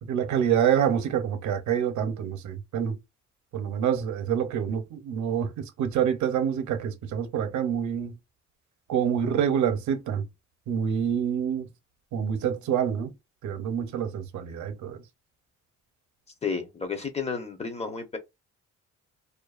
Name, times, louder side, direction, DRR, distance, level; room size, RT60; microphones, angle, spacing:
voice 1, 0.0-3.0 3.5-8.2 8.9-10.3 10.7-11.7 12.1-13.1 13.4-15.0, right 8 dB, 70° right, 0.7 m, -27 dB
voice 2, 16.4-18.2, left 5 dB, 20° left, 0.8 m, -32 dB
2.5 x 2.3 x 2.4 m
cardioid pair, 90°, 30 cm